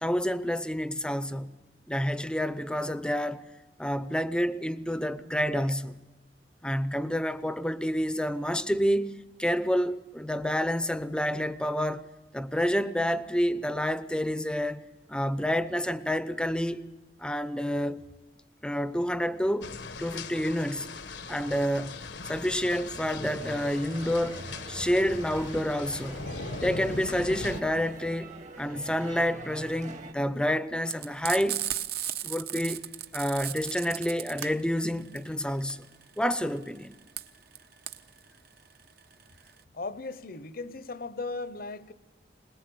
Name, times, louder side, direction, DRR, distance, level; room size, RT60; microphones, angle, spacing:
voice 1, 0.0-1.5 1.9-3.4 3.8-6.0 6.6-9.1 9.4-12.0 12.3-16.9 17.2-18.0 18.6-19.7 20.0-20.9 21.3-22.0 22.3-26.2 26.6-31.6 32.2-32.9 33.1-35.9 36.2-36.9, equal, 5° left, 0.6 m, -29 dB
sound 1, 19.6-27.6, left 3 dB, 75° left, 1.2 m, -39 dB
sound 2, 23.4-30.1, right 2 dB, 45° right, 1.3 m, -44 dB
Frying (food), 30.9-39.6, right 11 dB, 60° right, 1.0 m, -36 dB
voice 2, 39.7-41.9, left 3 dB, 55° left, 0.9 m, -37 dB
21.5 x 20.5 x 7.8 m
head